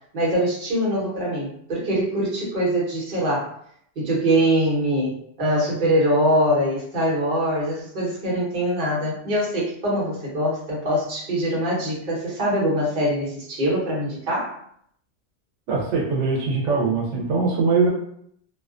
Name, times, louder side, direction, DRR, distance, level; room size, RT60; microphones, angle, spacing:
voice 1, 0.1-3.5 4.0-14.6, equal, 45° right, -6 dB, 1.0 m, -23 dB
voice 2, 15.7-17.9, right 4 dB, 90° right, -2 dB, 0.9 m, -22 dB
2.4 x 2.2 x 2.4 m, 0.68 s
omnidirectional pair, 1.2 m